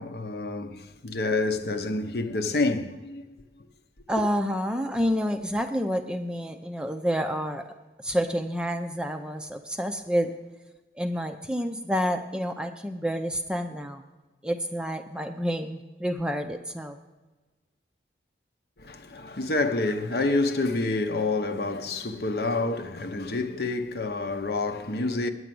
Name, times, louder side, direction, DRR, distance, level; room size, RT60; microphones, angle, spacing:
voice 1, 0.0-3.4 18.8-25.3, left 2 dB, 55° left, 0.8 m, -28 dB
voice 2, 4.1-7.7 8.0-10.3 11.0-14.0 14.4-17.0, equal, 5° right, 0.5 m, -29 dB
9.6 x 8.0 x 7.6 m
head